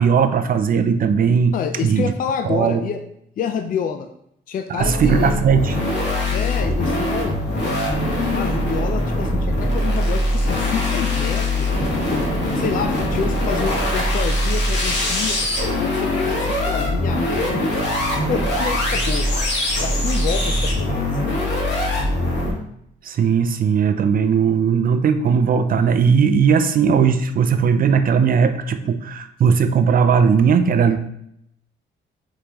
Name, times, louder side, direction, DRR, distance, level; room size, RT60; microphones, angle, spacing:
voice 1, 0.0-1.5 1.8-2.1 2.4-2.8 4.7-5.8 23.0-31.0, right 6 dB, 45° right, 9 dB, 0.4 m, -18 dB
voice 2, 1.5-3.0 3.4-4.1 4.5-5.4 6.3-7.4 8.3-11.7 12.1-12.2 12.6-15.4 15.8-18.0 18.3-21.1, left 7 dB, 45° left, 6 dB, 0.4 m, -28 dB
sound 1, 4.8-22.5, left 1 dB, 60° left, 1.5 m, -22 dB
5.2 x 3.2 x 2.9 m, 0.74 s
cardioid pair, 90°, 20 cm